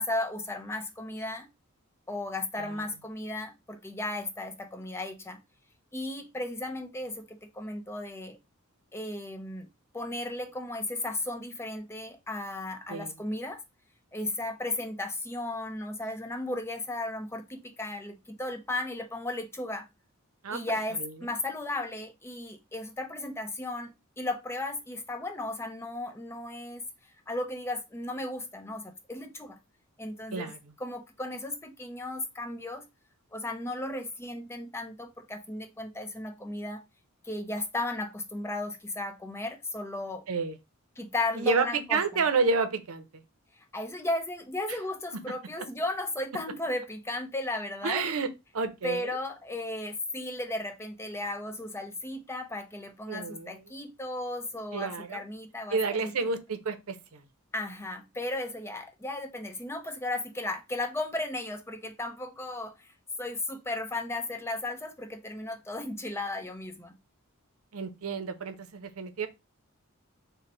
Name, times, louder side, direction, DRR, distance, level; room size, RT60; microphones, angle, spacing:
voice 1, 0.0-1.5 2.1-5.4 5.9-8.4 8.9-9.7 9.9-13.6 14.1-19.9 20.5-26.8 27.3-29.6 30.0-30.5 30.8-32.8 33.3-36.8 37.2-40.2 41.0-42.2 43.7-48.0 48.8-56.1 57.5-62.9 63.2-67.0, left 2 dB, 10° left, 0.5 m, -35 dB
voice 2, 20.4-21.1 30.3-30.6 40.3-40.6 41.3-43.0 44.7-44.8 47.8-48.3 48.5-49.1 53.1-53.6 54.7-55.2 55.7-57.2 67.7-69.3, right 4 dB, 85° right, 0.6 m, -30 dB
3.9 x 2.1 x 4.1 m
head